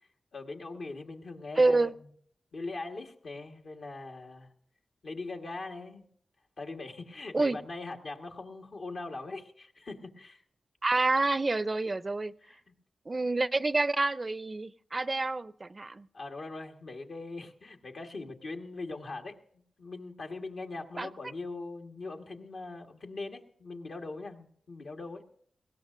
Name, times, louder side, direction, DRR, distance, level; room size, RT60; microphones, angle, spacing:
voice 1, 0.3-1.9 2.5-4.5 5.0-6.0 6.6-10.4 12.4-12.6 16.1-19.4 19.8-25.2, left 3 dB, 75° left, 2 dB, 1.4 m, -41 dB
voice 2, 1.6-1.9 7.3-7.6 10.8-12.3 13.1-16.1 21.0-21.1, right 3 dB, 40° right, 16 dB, 0.4 m, -28 dB
20.5 x 17.0 x 2.5 m, 0.63 s
cardioid pair, 50°, 0 cm